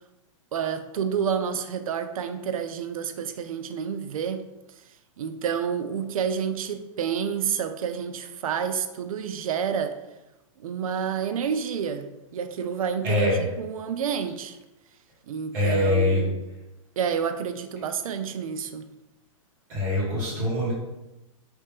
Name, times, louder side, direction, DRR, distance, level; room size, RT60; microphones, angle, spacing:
voice 1, 0.5-4.5 5.2-10.0 10.6-14.6 15.3-16.3 17.0-18.9, right 7 dB, 85° right, 9 dB, 0.4 m, -29 dB
voice 2, 13.0-13.5 15.5-16.3 19.7-20.7, left 1 dB, 35° right, -7 dB, 1.5 m, -23 dB
3.3 x 2.9 x 3.4 m, 0.98 s
hypercardioid pair, 175°, 18 cm